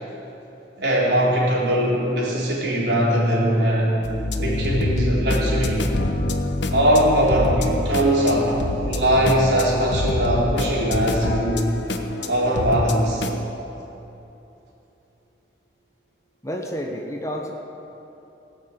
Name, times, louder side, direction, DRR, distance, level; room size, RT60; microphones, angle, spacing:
voice 1, 0.8-4.0 4.4-5.8 6.7-11.7 12.3-13.3, equal, 70° right, -5 dB, 3.7 m, -20 dB
sound 1, 4.0-13.4, left 1 dB, 80° left, 0.9 m, -26 dB
voice 2, 16.4-17.5, equal, 15° left, 2 dB, 0.9 m, -30 dB
18.0 x 6.4 x 8.2 m, 3.0 s
head